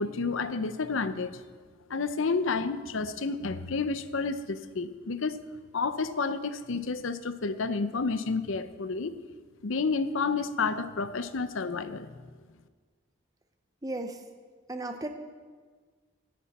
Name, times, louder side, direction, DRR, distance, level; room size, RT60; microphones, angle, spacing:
voice 1, 0.0-1.4 1.9-5.4 5.7-9.2 9.6-12.1, left 4 dB, 70° left, 12 dB, 0.6 m, -30 dB
voice 2, 13.8-14.2 14.7-15.1, right 2 dB, 15° right, 6 dB, 0.7 m, -34 dB
17.5 x 10.5 x 4.2 m, 1.5 s
head